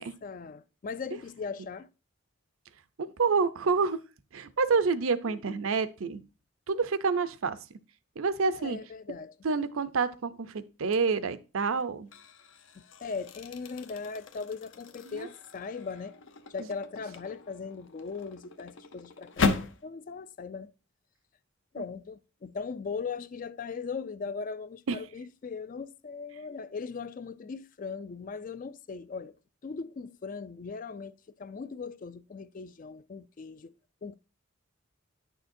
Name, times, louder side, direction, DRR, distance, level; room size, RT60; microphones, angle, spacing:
voice 1, 0.0-1.9 5.2-5.7 8.4-9.4 12.8-16.2 16.5-20.7 21.7-29.4 29.6-33.7 34.0-34.1, left 5 dB, 40° left, 0.3 m, -39 dB
voice 2, 3.0-4.0 4.3-6.2 6.7-7.6 8.2-8.8 9.4-12.1 15.1-15.3 21.8-21.9 24.9-25.0, right 4 dB, 85° right, 0.6 m, -28 dB
sound 1, 10.9-11.3 11.8-19.8, left 4 dB, 65° left, 0.7 m, -36 dB
9.7 x 6.5 x 2.6 m
head